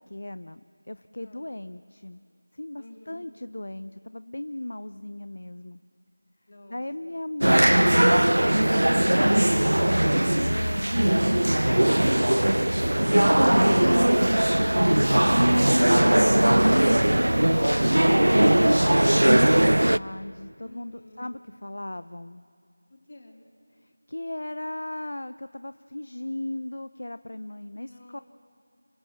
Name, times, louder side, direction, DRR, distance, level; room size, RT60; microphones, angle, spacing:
voice 1, 0.1-0.6 0.9-2.2 2.5-5.8 6.7-12.7 15.6-18.8 19.0-22.4 23.8-28.2, left 1 dB, 60° left, 13 dB, 0.6 m, -36 dB
voice 2, 1.2-1.6 2.8-3.3 6.5-7.2 20.6-21.3 22.9-23.4 27.8-28.2, left 1 dB, 40° left, 2 dB, 3.0 m, -50 dB
sound 1, 7.4-20.0, right 1 dB, 85° right, 0.5 m, -20 dB
28.0 x 18.0 x 7.3 m, 2.3 s
figure-of-eight pair, 175°, 0 cm